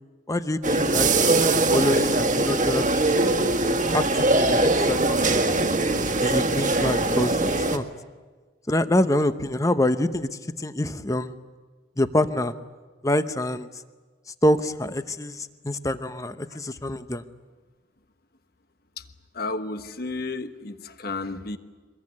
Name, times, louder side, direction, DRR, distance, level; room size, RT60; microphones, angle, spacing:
voice 1, 0.3-3.5 3.9-5.6 6.2-7.8 8.7-10.3 10.6-11.3 12.0-12.5 13.0-13.7 14.4-17.2, left 1 dB, 15° left, 11 dB, 0.9 m, -26 dB
sound 1, 0.6-7.8, right 2 dB, 40° right, 1.7 m, -22 dB
voice 2, 19.3-21.6, left 3 dB, 55° left, 9 dB, 1.3 m, -32 dB
24.5 x 21.5 x 9.8 m, 1.4 s
head